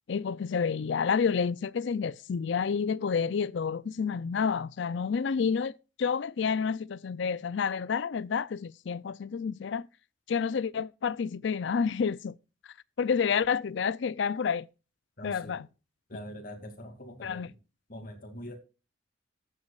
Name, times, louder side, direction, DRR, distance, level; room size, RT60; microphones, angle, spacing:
voice 1, 0.1-9.9 10.3-12.4 13.0-14.7 15.2-15.7 17.2-17.5, left 6 dB, 60° left, 0.4 m, -29 dB
voice 2, 15.2-15.6 16.1-17.5 17.9-18.6, equal, 45° left, 2.4 m, -43 dB
14.0 x 7.4 x 2.4 m
head